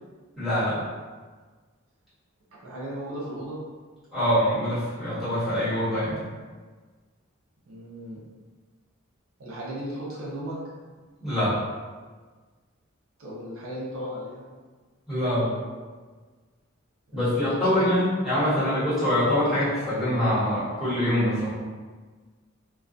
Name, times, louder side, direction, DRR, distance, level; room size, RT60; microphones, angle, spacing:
voice 1, 0.4-0.8 4.1-6.2 11.2-11.6 15.1-15.5 17.1-21.5, equal, ahead, -14 dB, 1.2 m, -24 dB
voice 2, 2.6-3.6 7.7-8.2 9.4-10.6 13.2-14.4 17.1-17.4 17.8-17.9, right 1 dB, 80° right, -6 dB, 0.6 m, -36 dB
2.3 x 2.2 x 2.5 m, 1.4 s
head